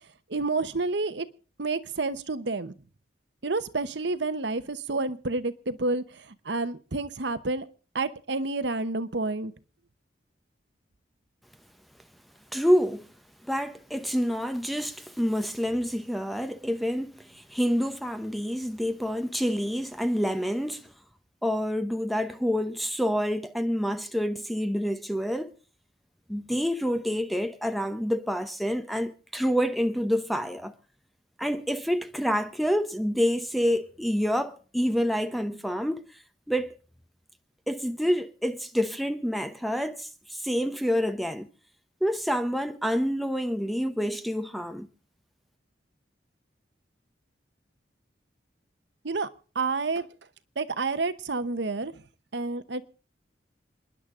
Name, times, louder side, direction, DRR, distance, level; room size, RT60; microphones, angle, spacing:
voice 1, 0.3-1.3 1.6-2.7 3.4-6.0 6.4-7.7 7.9-9.5 49.0-49.3 49.5-50.1 50.6-51.9 52.3-52.8, right 3 dB, 70° right, 1.0 m, -29 dB
voice 2, 12.5-13.1 13.5-20.9 21.4-25.5 26.3-30.7 31.4-36.0 36.5-36.7 37.7-41.5 42.0-44.9, equal, ahead, 0.8 m, -27 dB
27.5 x 10.5 x 3.7 m
head